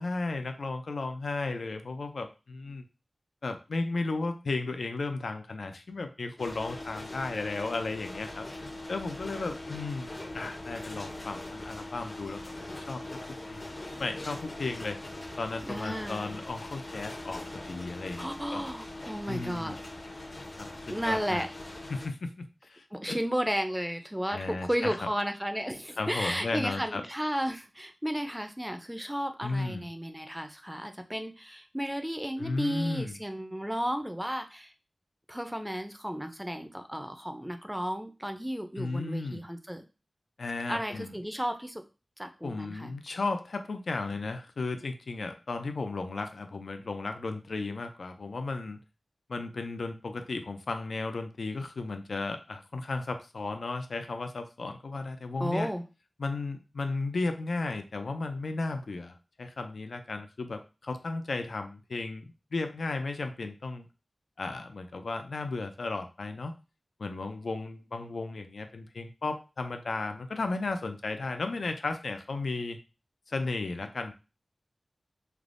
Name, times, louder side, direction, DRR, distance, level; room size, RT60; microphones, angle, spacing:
voice 1, 0.0-2.8 3.4-8.5 8.9-13.7 14.0-15.0 15.4-18.6 19.3-19.8 20.5-21.5 21.9-23.2 24.3-25.1 26.0-27.0 29.4-29.9 32.4-33.2 38.8-39.4 40.4-41.1 42.4-48.8 49.3-55.7 56.2-63.9 64.4-66.5 67.0-72.8 73.3-74.1, left 3 dB, 90° left, 7 dB, 0.3 m, -34 dB
sound 1, 6.4-22.1, left 2 dB, 50° left, 0.6 m, -41 dB
voice 2, 15.7-16.4 18.2-19.8 20.9-21.5 22.9-34.7 35.3-39.8 40.7-41.8 42.2-42.9 55.4-55.8, equal, 5° right, 6 dB, 0.4 m, -33 dB
3.2 x 2.0 x 2.5 m, 0.31 s
wide cardioid pair, 70°, 0 cm